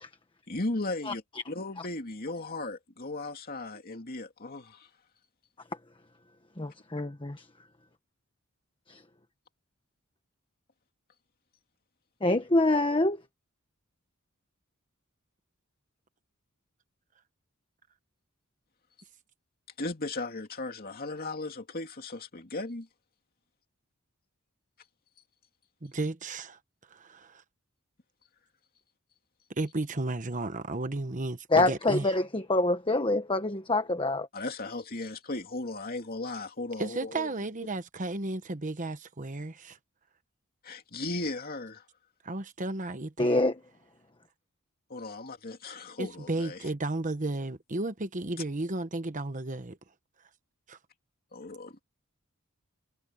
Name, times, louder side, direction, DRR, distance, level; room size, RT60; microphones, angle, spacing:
voice 1, 0.5-4.9 19.8-22.9 34.3-37.3 40.6-41.8 44.9-46.7 51.3-51.8, left 2 dB, 45° left, 2.7 m, -36 dB
voice 2, 6.6-7.4 8.9-9.0 12.2-13.2 31.5-34.3 43.2-43.6, left 2 dB, 25° left, 1.3 m, -26 dB
voice 3, 25.8-26.6 26.9-27.4 29.6-32.1 36.8-39.8 42.2-43.4 46.0-49.8 50.7-50.8, right 2 dB, 35° right, 1.2 m, -33 dB
head